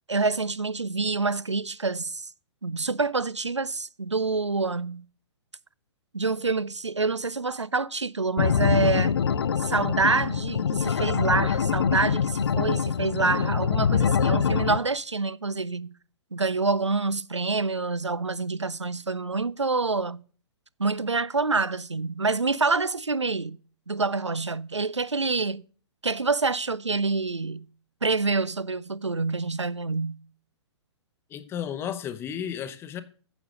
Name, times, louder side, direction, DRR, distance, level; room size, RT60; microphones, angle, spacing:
voice 1, 0.1-2.3 2.6-5.0 6.1-9.2 9.6-15.9 16.3-20.2 20.8-23.6 23.9-25.6 26.0-27.7 28.0-30.2, right 3 dB, 85° right, 0.5 m, -27 dB
sound 1, 8.4-14.8, left 7 dB, 60° left, 0.6 m, -24 dB
voice 2, 31.3-33.0, left 9 dB, 15° left, 0.8 m, -33 dB
9.4 x 7.0 x 4.9 m
figure-of-eight pair, 115°, 15 cm